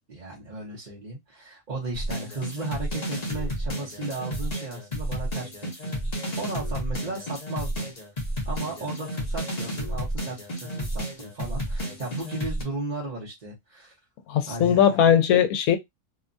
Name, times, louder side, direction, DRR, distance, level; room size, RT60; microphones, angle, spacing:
voice 1, 0.1-5.7 6.4-7.9 8.4-13.9 14.5-14.8, right 2 dB, 40° right, 0.8 m, -35 dB
sound 1, 1.9-12.6, equal, 35° left, 0.8 m, -31 dB
voice 2, 14.3-15.8, left 9 dB, 85° left, 1.1 m, -19 dB
2.9 x 2.2 x 2.5 m
omnidirectional pair, 1.5 m